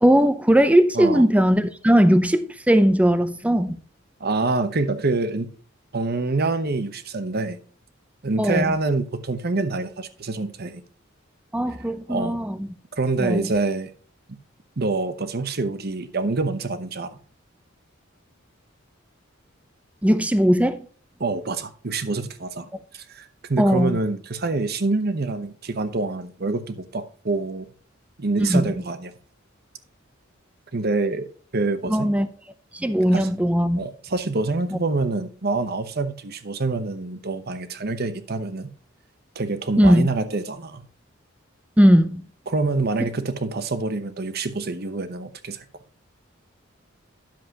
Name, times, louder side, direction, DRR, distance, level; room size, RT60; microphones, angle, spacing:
voice 1, 0.0-3.8 8.4-8.7 11.5-12.6 13.2-13.4 20.0-20.8 23.6-24.0 28.4-28.8 31.9-32.3 32.7-33.8 34.7-34.8 39.8-40.1 41.8-42.2 43.0-43.1, equal, 5° right, 0.6 m, -18 dB
voice 2, 4.2-5.5 5.9-7.6 8.2-10.8 12.1-12.4 13.0-13.9 14.8-17.1 21.2-22.7 22.9-27.7 28.2-29.1 30.7-32.1 33.1-33.3 33.8-38.7 39.3-40.8 42.5-45.6, right 3 dB, 50° right, 0.9 m, -26 dB
10.5 x 7.4 x 2.9 m
head